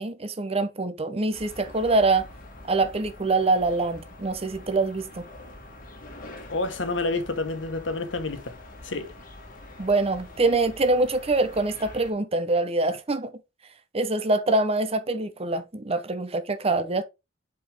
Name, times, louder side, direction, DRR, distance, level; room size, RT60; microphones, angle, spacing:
voice 1, 0.0-2.3 2.7-5.3 9.8-13.3 13.9-17.0, right 2 dB, 30° right, 0.8 m, -24 dB
sound 1, 1.3-12.1, left 2 dB, 45° left, 1.9 m, -45 dB
voice 2, 6.5-8.6 8.8-9.1, left 3 dB, 70° left, 1.2 m, -29 dB
7.6 x 4.8 x 3.5 m
head